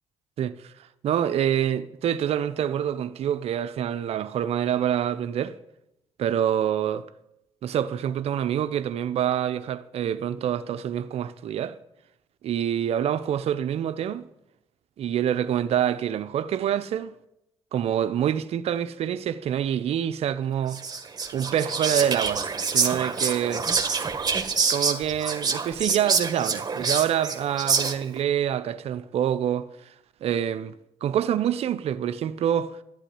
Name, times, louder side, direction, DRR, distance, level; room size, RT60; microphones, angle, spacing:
voice 1, 0.4-0.7 1.0-5.6 6.2-7.0 7.6-11.8 12.4-14.2 15.0-17.1 17.7-20.8 21.3-23.6 24.7-29.7 30.2-30.7 31.0-32.8, right 10 dB, 65° right, 0.8 m, -26 dB
Whispering, 20.7-28.2, right 5 dB, 35° right, 1.7 m, -26 dB
12.5 x 9.1 x 9.9 m
supercardioid pair, 60°, 11 cm